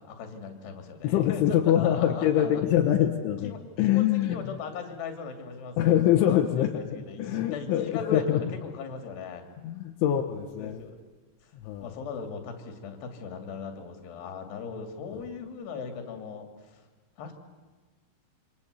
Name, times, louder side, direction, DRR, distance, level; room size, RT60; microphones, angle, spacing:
voice 1, 0.0-2.6 3.4-9.5 10.6-11.0 11.4-11.5 11.8-16.9 17.2-17.3, left 5 dB, 60° left, 6 dB, 4.6 m, -38 dB
voice 2, 1.0-3.5 3.8-4.4 5.8-6.8 7.2-8.4 9.6-10.8 11.6-11.9, left 11 dB, 80° left, 3 dB, 3.6 m, -24 dB
28.0 x 25.0 x 8.4 m, 1.3 s
omnidirectional pair, 5.5 m